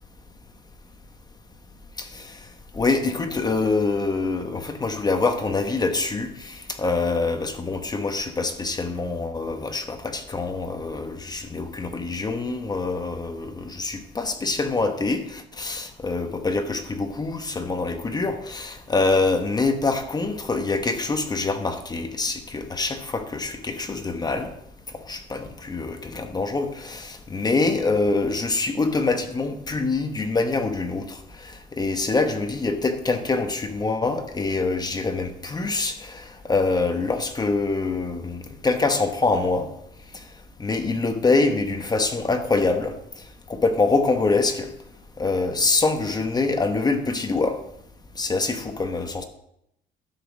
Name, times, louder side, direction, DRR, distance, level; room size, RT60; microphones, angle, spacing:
voice 1, 2.0-2.4 2.7-24.5 25.1-39.7 40.6-42.9 43.5-44.7 45.2-47.6 48.2-49.2, left 3 dB, 25° left, 7 dB, 1.1 m, -25 dB
12.0 x 6.1 x 6.1 m, 0.78 s
cardioid pair, 110°, 17 cm